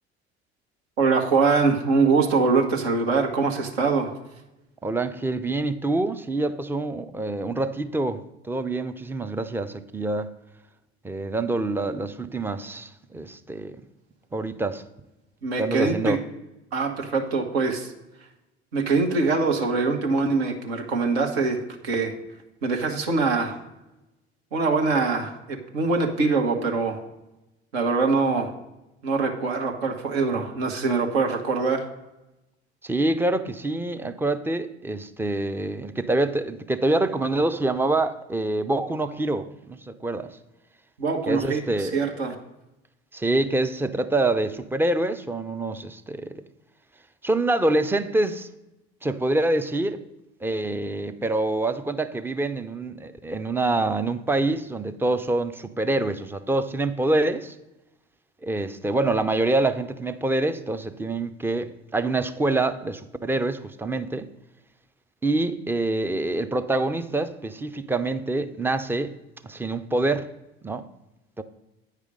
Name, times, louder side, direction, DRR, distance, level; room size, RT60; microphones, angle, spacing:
voice 1, 1.0-4.1 15.4-16.2 16.7-17.9 18.7-22.1 22.6-23.6 24.5-27.0 27.7-28.5 29.0-31.9 41.0-42.3, right 4 dB, 70° right, 1.2 m, -23 dB
voice 2, 4.8-10.3 11.0-13.8 14.3-14.8 15.6-16.2 32.8-40.3 41.3-42.0 43.1-46.4 47.2-48.5 49.0-50.0 50.4-57.5 58.4-64.3 65.2-69.1 69.4-70.3 70.6-70.9 71.4-71.5, right 2 dB, 5° right, 0.4 m, -26 dB
9.0 x 4.9 x 5.0 m
figure-of-eight pair, 60°, 32 cm